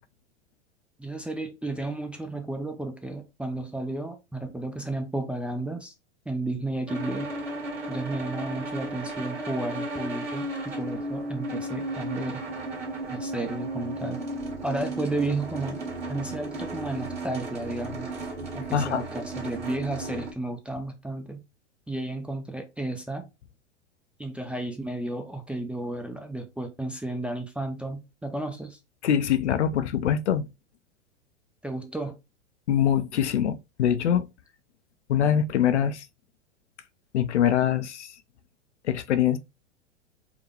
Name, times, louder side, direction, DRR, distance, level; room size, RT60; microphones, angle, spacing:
voice 1, 1.0-5.9 6.3-7.3 7.9-12.4 13.1-14.2 14.6-15.8 16.1-18.1 18.5-21.4 21.9-23.3 24.2-28.8 31.6-32.2, right 2 dB, 5° right, 0.4 m, -33 dB
sound 1, 6.9-20.3, right 2 dB, 25° right, 1.9 m, -34 dB
voice 2, 18.7-19.0 29.0-30.5 32.7-34.3 35.1-36.1 37.1-38.1 38.8-39.4, left 9 dB, 75° left, 0.6 m, -23 dB
4.8 x 2.2 x 3.3 m
hypercardioid pair, 100°, 35 cm